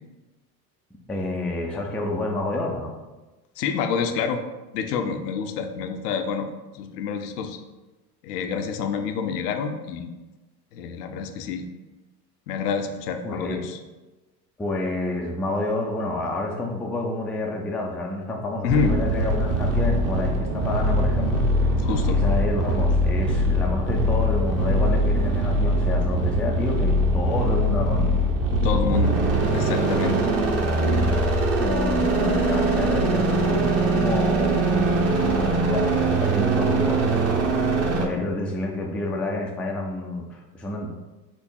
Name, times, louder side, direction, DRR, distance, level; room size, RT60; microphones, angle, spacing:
voice 1, 1.1-2.9 13.2-13.6 14.6-21.4 22.1-28.1 31.6-34.9 35.2-37.0 37.9-40.9, left 2 dB, 5° left, 0 dB, 0.3 m, -29 dB
voice 2, 3.6-4.4 4.7-6.5 6.7-7.6 8.2-10.1 10.7-11.6 12.5-13.8 18.6-19.0 21.8-22.2 28.6-29.2 29.5-30.3 38.1-38.3, left 6 dB, 75° left, 6 dB, 0.7 m, -27 dB
sound 1, 18.7-38.1, right 1 dB, 30° right, 0.9 m, -22 dB
4.5 x 2.5 x 4.5 m, 1.1 s
hypercardioid pair, 80°, 48 cm